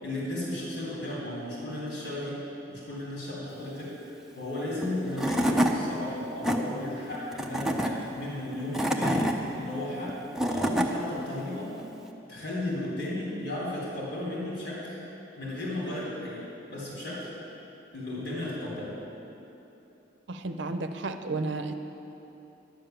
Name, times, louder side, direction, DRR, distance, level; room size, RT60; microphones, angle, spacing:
voice 1, 0.0-2.4 2.7-4.0 4.3-10.2 10.5-11.7 12.3-15.0 15.4-16.4 16.7-17.3 17.9-18.9, left 1 dB, 70° left, -6 dB, 3.3 m, -34 dB
Tools / Wood, 4.8-4.9 5.2-5.7 6.2-6.6 7.3-7.9 8.5-9.3 10.1-10.9, equal, ahead, 0.6 m, -26 dB
voice 2, 20.3-21.7, right 3 dB, 70° right, 8 dB, 0.7 m, -32 dB
12.0 x 6.9 x 9.1 m, 3.0 s
head